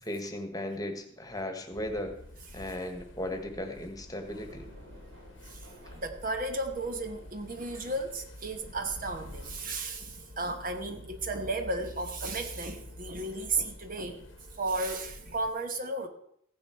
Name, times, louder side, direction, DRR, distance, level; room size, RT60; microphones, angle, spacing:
voice 1, 0.0-2.1 2.5-4.7, left 1 dB, 20° left, 6 dB, 1.4 m, -36 dB
sound 1, 1.7-15.5, left 1 dB, 80° left, 1.0 m, -48 dB
sound 2, 4.3-15.4, right 1 dB, 70° right, 4.6 m, -57 dB
voice 2, 5.9-14.2 14.6-16.1, right 2 dB, 45° right, 6 dB, 1.1 m, -34 dB
15.0 x 9.8 x 4.5 m, 0.70 s
head